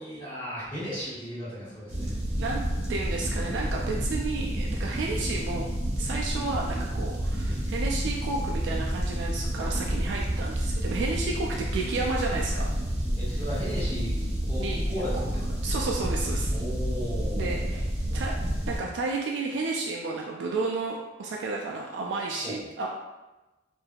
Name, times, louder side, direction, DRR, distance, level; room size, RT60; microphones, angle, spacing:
voice 1, 0.0-2.1 13.1-15.4 16.5-17.8 22.4-22.6, equal, 25° left, -17 dB, 1.3 m, -36 dB
sound 1, 1.9-18.8, equal, 35° right, 0.8 m, -29 dB
voice 2, 2.9-5.7 6.0-12.7 14.6-14.8 15.6-16.5 17.3-18.3 18.7-22.9, right 3 dB, 75° right, -1 dB, 0.3 m, -32 dB
3.4 x 2.6 x 2.3 m, 1.1 s
head